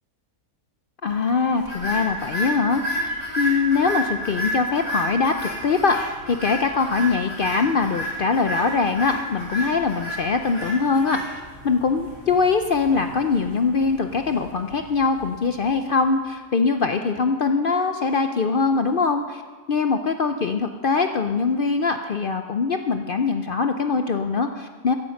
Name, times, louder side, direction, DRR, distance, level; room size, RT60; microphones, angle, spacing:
voice 1, 1.0-2.8 3.4-19.4 19.7-24.9, left 4 dB, 75° left, 7 dB, 0.4 m, -22 dB
sound 1, 1.6-15.9, equal, 15° right, 5.8 m, -32 dB
15.0 x 11.0 x 6.4 m, 1.5 s
omnidirectional pair, 1.7 m